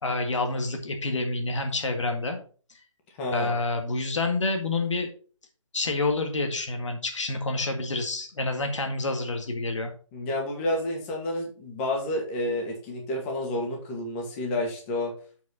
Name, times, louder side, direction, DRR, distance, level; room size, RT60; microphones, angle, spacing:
voice 1, 0.0-2.4 2.7-2.8 3.3-5.1 5.7-9.9, left 2 dB, 65° left, 4 dB, 1.9 m, -28 dB
voice 2, 3.2-3.5 10.1-15.1, left 1 dB, 25° left, 1 dB, 2.2 m, -30 dB
8.0 x 5.0 x 4.9 m, 0.40 s
figure-of-eight pair, 150°, 17 cm